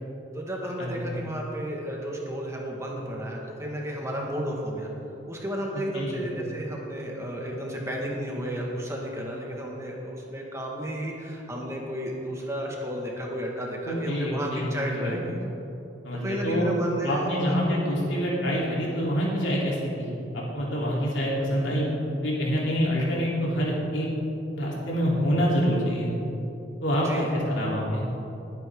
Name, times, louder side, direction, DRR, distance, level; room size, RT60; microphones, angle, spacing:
voice 1, 0.3-4.9 5.3-15.4 16.2-17.6 26.9-27.3, equal, 15° right, -2 dB, 1.8 m, -33 dB
voice 2, 13.8-15.2 16.0-16.7 17.0-21.9 22.2-24.1 24.5-26.1 26.8-28.1, equal, 90° left, -5 dB, 3.5 m, -26 dB
20.5 x 9.5 x 3.8 m, 2.9 s
head